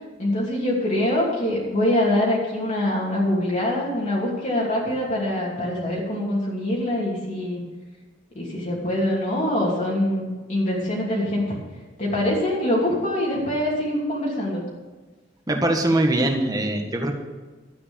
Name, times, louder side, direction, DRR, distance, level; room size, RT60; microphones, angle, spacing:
voice 1, 0.2-7.6 8.3-11.4 12.0-14.6, left 1 dB, 40° left, -5 dB, 2.8 m, -24 dB
voice 2, 15.5-17.1, right 1 dB, 20° right, 3 dB, 1.7 m, -22 dB
12.5 x 8.6 x 7.0 m, 1.3 s
head